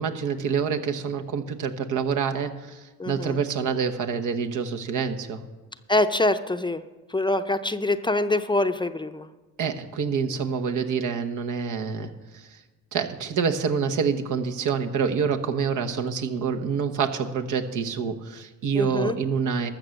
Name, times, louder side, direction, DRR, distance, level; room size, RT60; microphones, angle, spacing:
voice 1, 0.0-2.8 3.1-5.4 9.6-12.1 12.9-19.7, right 6 dB, 75° right, 5 dB, 1.1 m, -27 dB
voice 2, 3.0-3.4 5.9-6.8 7.1-9.3 18.7-19.2, left 2 dB, 15° left, 9 dB, 0.5 m, -24 dB
13.5 x 6.5 x 7.1 m, 1.2 s
cardioid pair, 75°, 31 cm